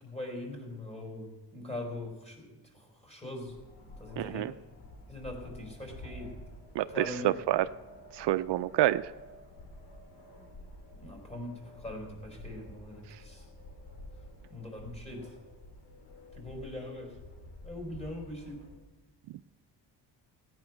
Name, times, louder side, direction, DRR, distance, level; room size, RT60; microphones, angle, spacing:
voice 1, 0.0-3.5 4.0-4.5 5.1-6.3 6.9-7.3 11.0-13.5 14.5-15.3 16.3-17.2 17.6-18.7, left 1 dB, 15° left, -1 dB, 4.5 m, -41 dB
sound 1, 3.4-18.8, left 1 dB, 70° left, 3.0 m, -50 dB
voice 2, 4.2-4.5 6.7-7.7 8.1-9.1, right 14 dB, 70° right, 13 dB, 0.5 m, -28 dB
17.5 x 9.4 x 6.1 m, 1.2 s
cardioid pair, 120°, 43 cm